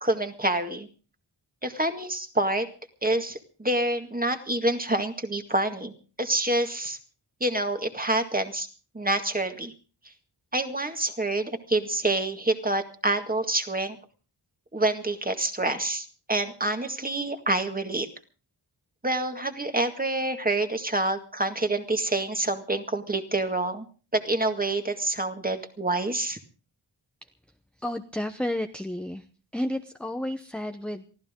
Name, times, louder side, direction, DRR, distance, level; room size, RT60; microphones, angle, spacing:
voice 1, 0.0-0.9 1.6-2.7 3.0-5.9 6.2-7.0 7.4-8.7 8.9-9.7 10.5-14.0 14.7-18.1 19.0-23.9 24.1-26.4, right 2 dB, 20° right, 7 dB, 2.0 m, -27 dB
voice 2, 27.8-29.2 29.5-31.1, left 1 dB, ahead, 6 dB, 0.9 m, -31 dB
24.0 x 15.0 x 3.7 m, 0.37 s
wide cardioid pair, 100°, 43 cm